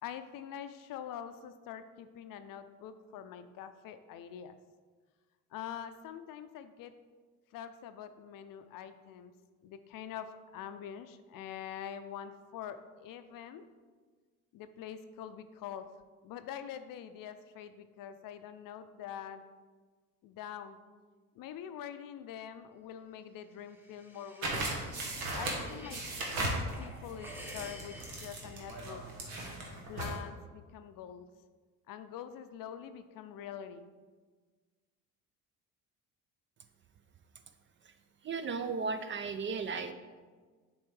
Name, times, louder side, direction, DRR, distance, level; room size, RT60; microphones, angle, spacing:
voice 1, 0.0-4.6 5.5-6.9 7.5-9.3 9.6-13.6 14.5-15.9 16.2-19.4 20.2-20.8 21.4-24.7 25.3-29.0 29.9-31.3 31.9-33.9, left 9 dB, 55° left, 11 dB, 0.5 m, -45 dB
sound 1, 23.4-26.1 26.5-29.4, equal, 5° right, 0.9 m, -52 dB
sound 2, 24.4-30.2, right 2 dB, 90° right, 1.1 m, -37 dB
voice 2, 38.2-39.9, right 4 dB, 30° right, 10 dB, 0.4 m, -35 dB
7.0 x 4.2 x 3.3 m, 1.5 s
hypercardioid pair, 60°, 40 cm